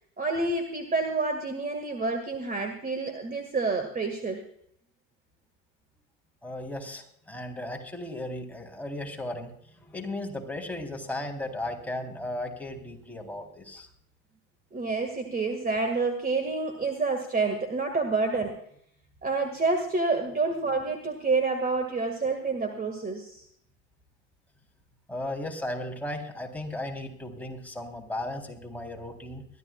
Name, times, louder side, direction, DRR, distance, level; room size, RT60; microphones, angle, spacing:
voice 1, 0.2-4.4 14.7-18.6 19.2-23.4, right 3 dB, 20° right, 6 dB, 2.0 m, -28 dB
voice 2, 6.4-13.9 20.5-20.7 25.1-29.5, left 1 dB, 5° left, 1 dB, 3.6 m, -36 dB
23.0 x 13.5 x 2.4 m, 0.67 s
hypercardioid pair, 85°, 40 cm